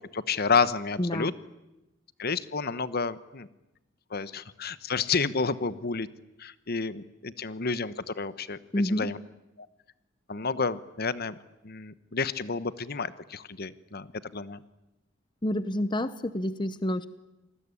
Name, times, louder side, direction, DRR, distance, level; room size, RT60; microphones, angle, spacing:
voice 1, 0.0-1.3 2.2-3.5 4.1-6.1 6.4-8.6 8.8-9.2 9.6-9.7 10.3-11.3 11.6-14.1 14.3-14.6, left 5 dB, 55° left, 15 dB, 1.1 m, -30 dB
voice 2, 1.0-1.3 8.7-9.1 15.4-17.1, left 1 dB, 25° left, 14 dB, 0.9 m, -28 dB
27.5 x 20.0 x 9.9 m, 0.96 s
head